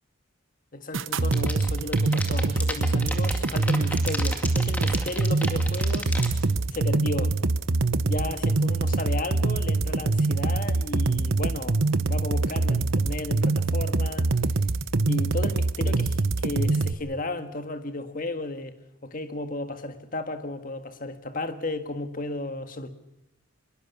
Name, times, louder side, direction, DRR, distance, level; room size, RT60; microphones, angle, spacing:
voice 1, 0.7-6.2 6.7-7.4 8.0-11.8 12.1-14.3 15.1-18.8 19.0-22.9, left 2 dB, 40° left, 1.7 m, -34 dB
sound 1, 0.9-16.9, right 3 dB, 70° right, 1.0 m, -24 dB
sound 2, 1.2-6.3, left 1 dB, 5° left, 2.2 m, -32 dB
24.5 x 22.0 x 6.9 m
head